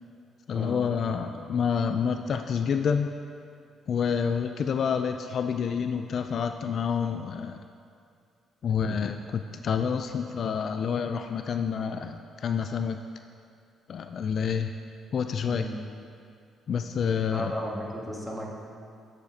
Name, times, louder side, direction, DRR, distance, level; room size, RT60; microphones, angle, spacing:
voice 1, 0.5-3.1 3.9-7.6 8.6-13.0 13.9-14.7 15.1-15.7 16.7-17.5, left 6 dB, 60° left, 7 dB, 0.3 m, -28 dB
voice 2, 17.3-18.5, equal, ahead, -4 dB, 1.7 m, -34 dB
13.0 x 6.7 x 2.8 m, 2.4 s
cardioid pair, 90°, 0 cm